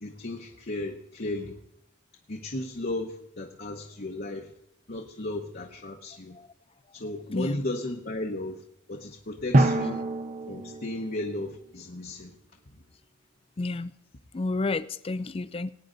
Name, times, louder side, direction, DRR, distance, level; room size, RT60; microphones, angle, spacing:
voice 1, 0.0-1.6 2.3-4.5 4.9-6.4 6.9-8.6 8.9-10.0 10.5-12.3, left 2 dB, 45° left, 1 dB, 1.0 m, -34 dB
voice 2, 7.3-7.6 13.6-13.9 14.3-15.7, left 3 dB, 25° left, 16 dB, 0.4 m, -30 dB
Drum, 9.5-11.8, right 1 dB, 40° right, 0.9 m, -26 dB
20.0 x 9.5 x 3.9 m, 0.80 s
head